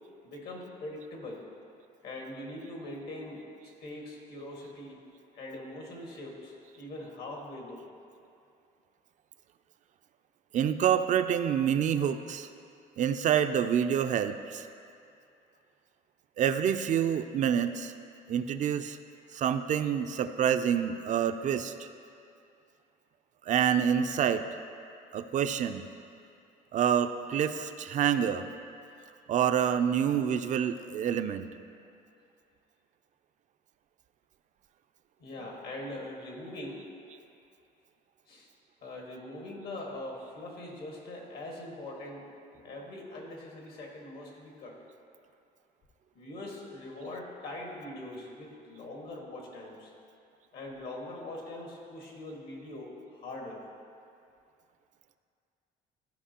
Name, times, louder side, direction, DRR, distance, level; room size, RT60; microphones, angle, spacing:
voice 1, 0.2-1.4 2.0-3.4 3.8-5.0 5.3-7.9 35.2-36.9 38.3-38.5 38.8-44.8 46.1-49.9 50.5-53.6, left 1 dB, 70° left, -1 dB, 1.8 m, -42 dB
voice 2, 10.5-12.5 13.0-14.7 16.4-17.9 18.3-19.0 19.3-21.9 23.5-24.4 25.1-25.9 26.7-28.5 29.3-31.5, right 8 dB, 45° right, 9 dB, 0.4 m, -27 dB
13.5 x 5.2 x 2.9 m, 2.5 s
cardioid pair, 110°, 17 cm